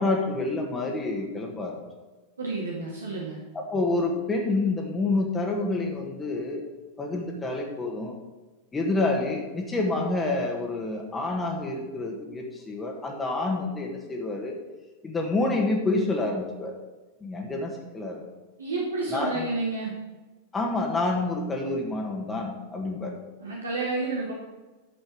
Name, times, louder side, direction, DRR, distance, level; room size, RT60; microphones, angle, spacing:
voice 1, 0.0-1.8 3.5-6.6 7.0-8.2 8.7-14.6 15.0-16.7 17.2-18.2 19.1-19.5 20.5-23.1, left 2 dB, 15° left, 0 dB, 1.8 m, -28 dB
voice 2, 2.4-3.4 18.6-19.9 23.4-24.3, right 3 dB, 75° right, -3 dB, 2.0 m, -30 dB
11.0 x 7.5 x 4.8 m, 1.2 s
figure-of-eight pair, 90°, 0 cm